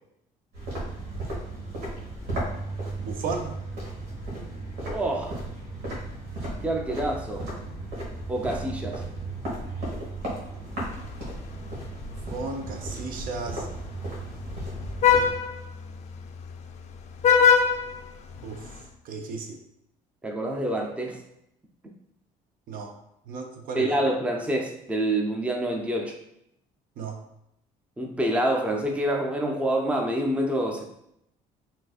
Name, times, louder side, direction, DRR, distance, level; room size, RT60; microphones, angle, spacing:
sound 1, 0.5-15.3, right 2 dB, 90° right, 1.3 m, -35 dB
voice 1, 3.0-3.6 12.3-13.7 18.4-18.6 19.0-19.6 22.7-22.9 23.3-24.0 27.0-27.2, right 4 dB, 65° right, 4 dB, 0.5 m, -34 dB
voice 2, 4.8-5.4 6.6-7.5 8.3-9.0 20.2-21.2 23.7-26.2 28.0-30.9, right 1 dB, 10° right, 1 dB, 0.5 m, -27 dB
Vehicle horn car horn honking, 10.7-18.8, left 7 dB, 45° left, 0.4 m, -27 dB
3.9 x 2.6 x 2.4 m, 0.79 s
cardioid pair, 95°, 16 cm